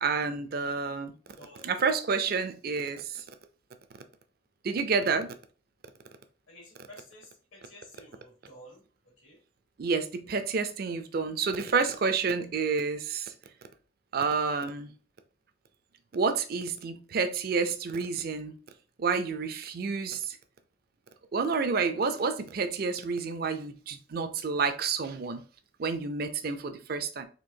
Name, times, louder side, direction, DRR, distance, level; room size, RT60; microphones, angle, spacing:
voice 1, 0.0-1.1 1.6-3.2 4.6-5.3 9.8-13.3 14.1-14.9 16.1-18.5 19.0-20.4 21.3-25.4 25.8-27.3, right 5 dB, 50° right, 0.4 m, -29 dB
voice 2, 1.4-1.7 6.5-8.8 9.2-9.4, left 1 dB, 85° left, 2.1 m, -52 dB
4.4 x 2.7 x 2.7 m
head